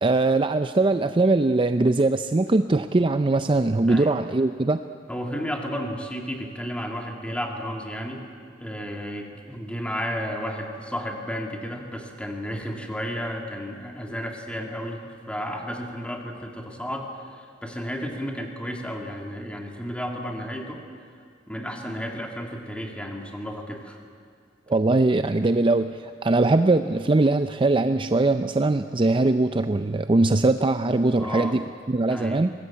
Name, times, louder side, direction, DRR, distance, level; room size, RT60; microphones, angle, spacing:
voice 1, 0.0-4.8 24.7-32.5, right 2 dB, 25° right, 10 dB, 0.5 m, -21 dB
voice 2, 3.8-4.1 5.1-8.2 8.6-20.8 21.5-24.0 31.2-31.6 32.0-32.4, equal, 5° left, 2 dB, 2.4 m, -33 dB
22.5 x 19.5 x 8.6 m, 2.2 s
head